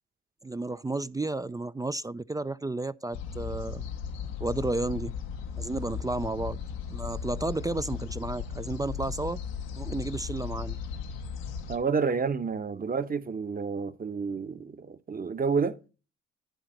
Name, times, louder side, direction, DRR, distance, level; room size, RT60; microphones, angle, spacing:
voice 1, 0.4-3.8 4.4-5.1 5.6-6.6 6.9-9.4 9.8-10.8, right 2 dB, 10° right, 0.3 m, -32 dB
sound 1, 3.1-11.8, left 7 dB, 90° left, 0.9 m, -36 dB
voice 2, 11.7-15.8, right 5 dB, 30° right, 0.9 m, -29 dB
10.5 x 4.0 x 5.7 m
supercardioid pair, 55°, 31 cm